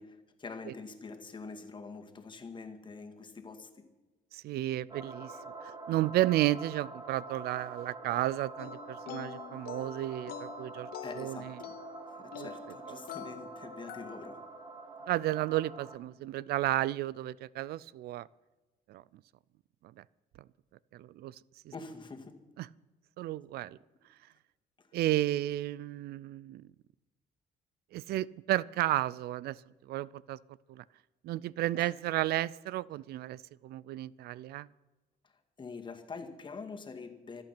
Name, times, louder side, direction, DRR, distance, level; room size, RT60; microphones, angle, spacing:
voice 1, 0.0-3.9 11.0-14.5 21.7-22.4 24.8-24.9 31.7-31.9 35.2-35.3 35.6-37.4, left 4 dB, 30° left, 5 dB, 2.1 m, -45 dB
voice 2, 4.3-10.9 11.2-11.5 12.3-12.5 12.9-13.0 15.1-18.3 18.9-19.0 20.9-21.4 22.6-22.7 23.2-23.8 24.9-26.7 27.9-29.6 29.9-30.4 30.7-30.8 31.2-34.7, right 15 dB, 70° right, 22 dB, 0.4 m, -32 dB
big airy choir pad, 4.9-16.0, right 3 dB, 25° right, 2.0 m, -46 dB
sound 1, 8.6-14.5, left 9 dB, 65° left, 1.0 m, -46 dB
25.5 x 8.8 x 5.9 m, 1.2 s
cardioid pair, 110°, 17 cm